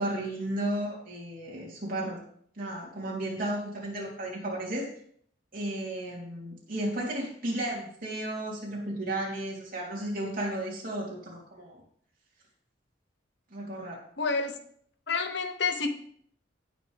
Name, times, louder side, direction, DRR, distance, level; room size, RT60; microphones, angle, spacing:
voice 1, 0.0-2.2 2.6-4.9 5.5-11.8 13.5-14.0, right 1 dB, 45° right, -4 dB, 3.4 m, -33 dB
voice 2, 14.2-14.6 15.1-15.9, left 4 dB, 60° left, 7 dB, 1.0 m, -29 dB
17.0 x 6.2 x 3.5 m, 0.62 s
head